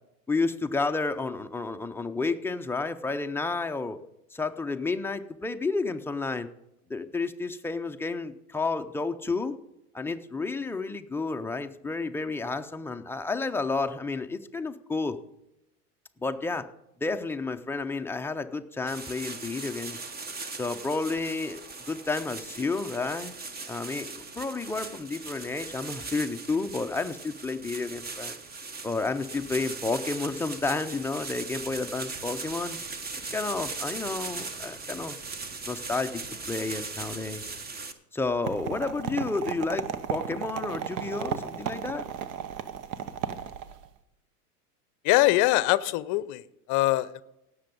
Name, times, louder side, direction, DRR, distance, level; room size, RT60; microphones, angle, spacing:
voice 1, 0.3-4.0 4.3-6.5 6.9-9.6 9.9-15.2 16.2-16.7 17.0-20.1 20.6-21.6 21.9-23.3 23.7-28.4 28.8-32.8 33.3-35.2 35.7-36.2 36.5-37.4 38.1-42.1, left 3 dB, 5° left, 6 dB, 0.5 m, -31 dB
sound 1, 18.9-37.9, right 4 dB, 20° right, 1.1 m, -39 dB
sound 2, 38.4-43.9, right 8 dB, 55° right, 1.1 m, -35 dB
voice 2, 45.0-46.4 46.7-47.2, left 17 dB, 40° left, 18 dB, 0.7 m, -23 dB
17.5 x 7.0 x 5.3 m, 0.86 s
hypercardioid pair, 100°, 46 cm